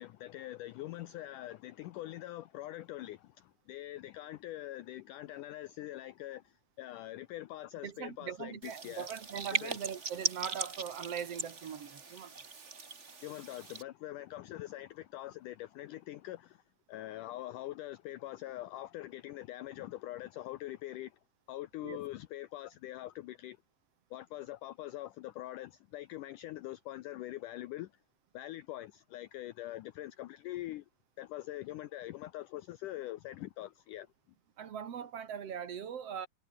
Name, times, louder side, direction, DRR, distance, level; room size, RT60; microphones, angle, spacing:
voice 1, 0.0-9.1 9.6-9.8 13.2-16.6 16.9-21.2 21.5-23.6 24.1-27.9 28.3-30.9 31.2-34.1, left 15 dB, 80° left, 1.9 m, -43 dB
voice 2, 7.8-12.6 21.8-22.0 34.6-36.3, right 8 dB, 50° right, 2.3 m, -41 dB
sound 1, 8.6-13.8, right 4 dB, 35° right, 1.2 m, -39 dB
omnidirectional pair, 4.6 m